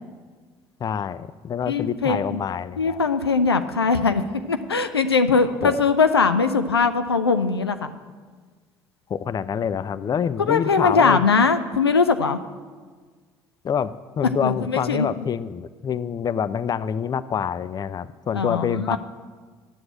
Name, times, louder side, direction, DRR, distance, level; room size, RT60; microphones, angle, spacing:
voice 1, 0.8-3.0 5.6-5.8 9.1-11.3 13.6-19.0, left 7 dB, 30° left, 16 dB, 0.5 m, -26 dB
voice 2, 1.7-2.4 2.8-4.2 4.5-7.9 10.4-12.4 14.4-15.1 18.3-19.0, left 4 dB, 85° left, 9 dB, 0.5 m, -21 dB
10.5 x 7.8 x 8.9 m, 1.5 s
figure-of-eight pair, 50°, 13 cm